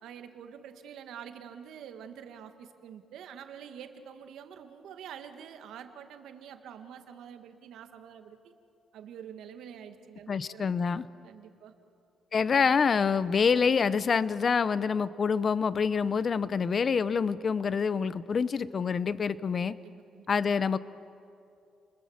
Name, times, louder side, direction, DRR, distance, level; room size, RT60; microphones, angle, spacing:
voice 1, 0.0-8.5 8.9-10.7 11.2-11.7 19.8-20.3, right 8 dB, 80° right, 7 dB, 1.8 m, -46 dB
voice 2, 10.3-11.1 12.3-19.7 20.3-20.8, left 6 dB, 45° left, 16 dB, 0.7 m, -26 dB
30.0 x 21.5 x 7.3 m, 2.6 s
cardioid pair, 90°, 0 cm